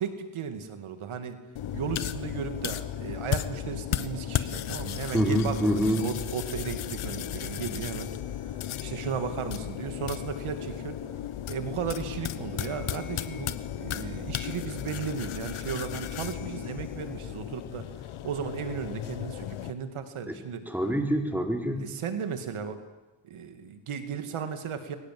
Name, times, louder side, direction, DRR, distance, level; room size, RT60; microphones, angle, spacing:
voice 1, 0.0-1.4 1.7-11.0 11.5-17.8 18.2-20.6 21.8-22.8 23.2-25.0, right 7 dB, 85° right, 8 dB, 2.5 m, -35 dB
sound 1, 1.6-19.7, left 11 dB, 85° left, 1.3 m, -35 dB
voice 2, 5.1-6.1 20.3-20.4 20.7-21.8, equal, 5° right, 4 dB, 3.9 m, -26 dB
29.5 x 23.5 x 7.9 m, 1.1 s
cardioid pair, 95°, 48 cm